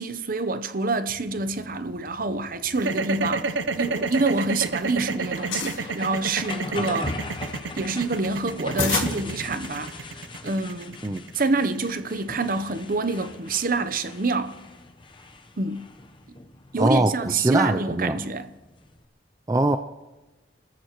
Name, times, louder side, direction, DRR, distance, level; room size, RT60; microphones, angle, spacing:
voice 1, 0.0-7.2 7.7-11.0 11.3-14.5 15.6-15.9 16.7-18.5, right 3 dB, 50° right, 0.8 m, -27 dB
sound 1, 1.1-19.0, left 2 dB, 25° left, 0.8 m, -39 dB
sound 2, 2.7-12.9, right 4 dB, 80° right, 0.7 m, -30 dB
sound 3, 3.8-4.9 5.2-5.8 6.5-10.0, left 6 dB, 75° left, 2.2 m, -32 dB
voice 2, 16.8-18.2 19.5-19.8, right 2 dB, 20° right, 0.4 m, -22 dB
29.0 x 15.0 x 3.1 m
head